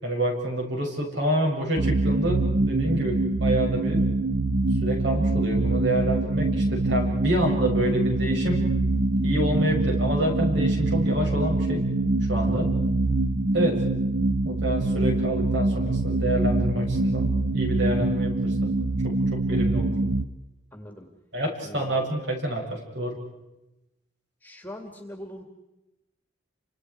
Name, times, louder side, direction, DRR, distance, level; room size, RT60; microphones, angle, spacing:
voice 1, 0.0-4.1 4.8-8.7 9.2-11.8 12.3-12.7 13.5-13.8 14.4-18.7 19.0-19.9 21.3-23.2, right 1 dB, 60° right, 0 dB, 7.0 m, -28 dB
sound 1, 1.8-20.2, right 2 dB, 40° right, 0.9 m, -24 dB
voice 2, 20.7-21.1 21.6-22.0 24.4-25.4, left 1 dB, 10° left, 4 dB, 2.3 m, -41 dB
30.0 x 26.0 x 4.8 m, 0.97 s
head